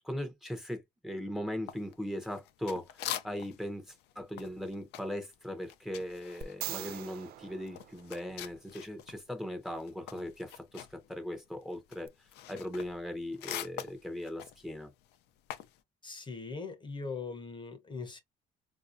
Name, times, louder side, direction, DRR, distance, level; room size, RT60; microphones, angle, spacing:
voice 1, 0.0-12.1 12.5-14.9, left 1 dB, ahead, 0.8 m, -39 dB
sound 1, 1.7-3.7 4.0-9.2 9.5-15.8, left 12 dB, 80° left, 0.5 m, -44 dB
sound 2, 6.4-8.6 12.1-12.2, right 11 dB, 65° right, 0.4 m, -42 dB
voice 2, 16.0-18.2, left 4 dB, 30° left, 0.8 m, -40 dB
4.0 x 2.6 x 2.5 m
cardioid pair, 110°, 17 cm